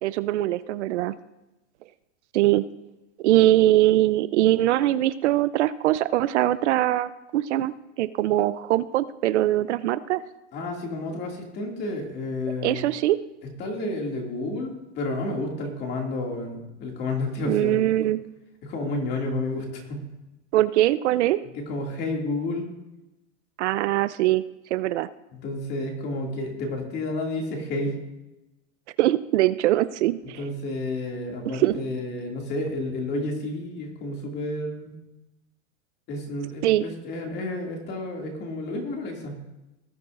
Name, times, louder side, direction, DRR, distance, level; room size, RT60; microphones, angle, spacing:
voice 1, 0.0-1.1 2.3-2.7 3.2-10.2 12.6-13.2 17.4-18.2 20.5-21.4 23.6-24.4 24.7-25.1 29.0-30.4 31.5-31.8 36.6-36.8, right 14 dB, 70° right, 15 dB, 0.5 m, -22 dB
voice 2, 10.5-12.8 13.6-17.8 18.6-20.0 21.5-22.7 25.3-28.0 30.4-34.9 36.1-39.4, left 2 dB, 30° left, 1 dB, 2.3 m, -31 dB
19.0 x 9.8 x 2.5 m, 0.99 s
supercardioid pair, 155°, 36 cm